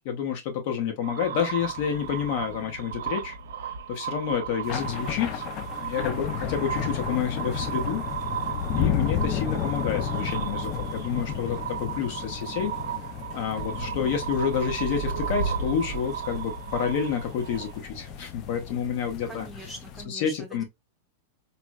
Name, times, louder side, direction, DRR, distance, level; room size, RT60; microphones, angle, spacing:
voice 1, 0.0-3.3 3.9-5.4 5.8-8.0 8.8-12.7 13.3-19.5 20.1-20.6, left 7 dB, 50° left, 0.8 m, -29 dB
sound 1, 1.0-18.1, right 8 dB, 85° right, 0.8 m, -35 dB
sound 2, 1.6-3.3 4.6-20.0, left 8 dB, 30° left, 0.4 m, -33 dB
voice 2, 19.3-20.6, right 1 dB, 5° right, 0.7 m, -42 dB
4.0 x 2.0 x 2.2 m
supercardioid pair, 155°, 0 cm